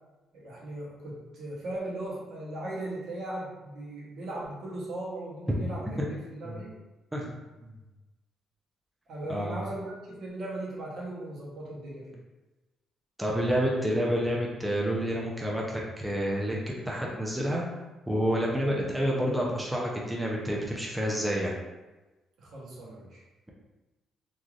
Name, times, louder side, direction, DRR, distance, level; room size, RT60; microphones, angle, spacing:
voice 1, 0.3-6.7 9.1-12.2 22.4-23.2, right 1 dB, 65° right, -5 dB, 0.9 m, -38 dB
voice 2, 9.3-9.6 13.2-17.6 18.1-21.5, equal, 5° right, -3 dB, 0.5 m, -29 dB
3.1 x 2.5 x 2.4 m, 1.1 s
cardioid pair, 95°, 0 cm